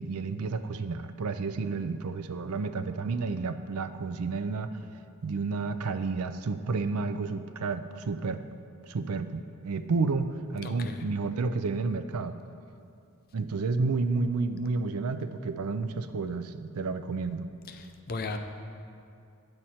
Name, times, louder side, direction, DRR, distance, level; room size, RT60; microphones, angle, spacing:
voice 1, 0.0-4.7 5.2-8.4 8.9-12.3 13.3-17.5, right 4 dB, 80° right, 10 dB, 0.5 m, -31 dB
voice 2, 10.6-11.0 18.1-18.4, left 3 dB, 45° left, 6 dB, 0.6 m, -34 dB
9.3 x 7.8 x 4.3 m, 2.4 s
head